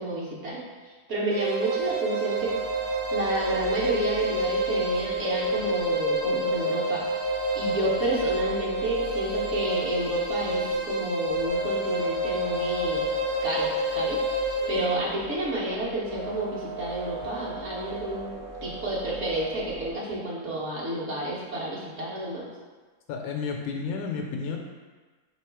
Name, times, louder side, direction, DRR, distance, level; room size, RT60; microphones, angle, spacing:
voice 1, 0.0-2.5 3.1-13.1 13.4-18.3 18.6-22.4, right 1 dB, 50° right, -6 dB, 1.2 m, -30 dB
sound 1, 1.3-15.0, right 1 dB, 75° right, 1.2 m, -28 dB
sound 2, 1.6-19.9, right 2 dB, 35° right, 0.6 m, -39 dB
voice 2, 23.1-24.6, left 5 dB, 75° left, 1 dB, 1.0 m, -31 dB
3.5 x 3.0 x 4.6 m, 1.3 s
omnidirectional pair, 1.6 m